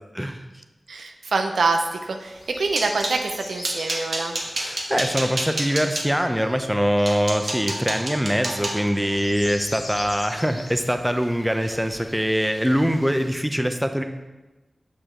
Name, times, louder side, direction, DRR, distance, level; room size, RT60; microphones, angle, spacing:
voice 1, 0.9-4.4, right 3 dB, 90° right, 5 dB, 0.5 m, -25 dB
sound 1, 1.7-13.3, left 1 dB, 65° left, 1.1 m, -43 dB
sound 2, 2.3-3.2 3.6-6.1 6.7-6.8 7.1-11.3 11.6-12.0 12.3-12.5 12.9-13.1, right 2 dB, 65° right, 1.1 m, -31 dB
voice 2, 4.6-14.0, equal, 5° right, 7 dB, 0.6 m, -23 dB
6.4 x 5.2 x 3.7 m, 1.1 s
cardioid pair, 45°, 0 cm